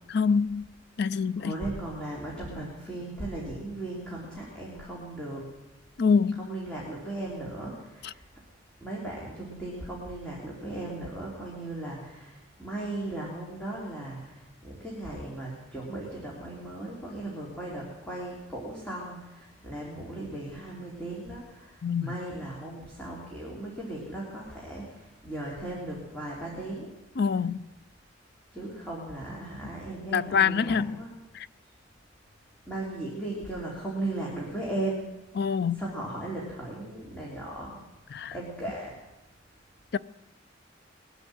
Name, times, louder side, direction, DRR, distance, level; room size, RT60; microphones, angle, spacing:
voice 1, 0.1-0.7 1.0-1.5 6.0-6.5 8.0-8.1 21.8-22.2 27.2-27.7 30.1-31.0 31.3-31.5 35.4-35.8 38.1-38.3 39.9-40.0, left 6 dB, 60° left, 0.5 m, -25 dB
voice 2, 1.4-5.5 6.4-8.2 8.8-26.9 28.5-31.1 32.7-35.1 35.8-37.8 38.3-39.0, right 2 dB, 5° left, 3.2 m, -37 dB
21.5 x 8.1 x 7.8 m
head